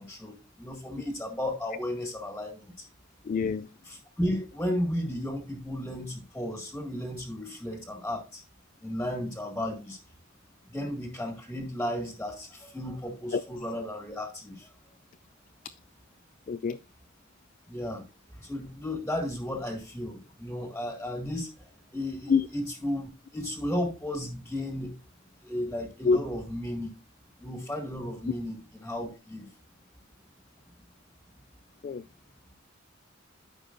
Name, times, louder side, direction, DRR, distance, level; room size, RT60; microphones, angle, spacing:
voice 1, 0.0-2.9 3.9-8.4 8.8-10.0 10.7-14.7 17.7-18.0 18.3-24.9 25.4-26.9 27.4-29.5, left 1 dB, 5° left, 1.8 m, -34 dB
voice 2, 3.2-3.7 13.3-13.4 16.5-16.8 22.3-22.5 26.0-26.2 31.8-32.0, left 5 dB, 40° left, 0.3 m, -25 dB
13.5 x 5.3 x 2.5 m
head